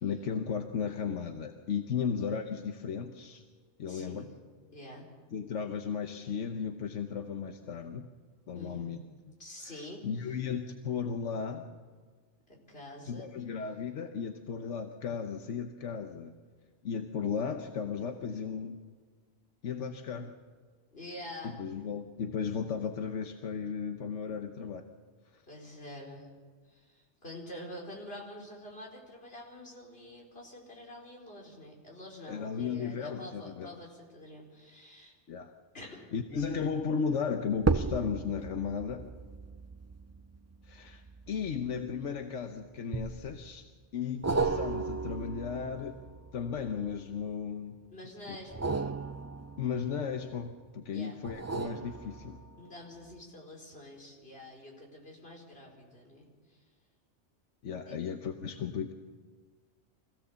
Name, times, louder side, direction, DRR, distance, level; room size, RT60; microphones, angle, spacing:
voice 1, 0.0-3.4 3.8-4.2 5.3-8.1 8.5-9.0 9.6-11.7 13.0-16.3 16.8-18.8 19.6-20.4 21.4-24.9 25.3-25.4 32.3-33.7 35.3-35.5 36.1-39.1 40.6-43.6 43.9-46.0 46.3-47.8 48.3-48.4 49.6-52.4 57.6-58.9, left 6 dB, 85° left, 5 dB, 1.3 m, -35 dB
voice 2, 3.9-4.3 4.7-5.1 8.5-9.0 9.4-10.0 12.5-13.3 20.9-21.6 25.5-26.3 26.6-35.1 35.7-36.0 47.9-48.8 50.9-51.2 52.6-56.6 57.9-58.0, left 1 dB, 55° left, -2 dB, 4.8 m, -47 dB
sound 1, 36.4-36.7 37.6-42.2 42.9-43.5 44.2-47.2 48.4-50.5 51.2-52.7 53.1-53.2, right 4 dB, 25° right, 0.3 m, -35 dB
25.0 x 16.0 x 7.1 m, 1.5 s
omnidirectional pair, 1.2 m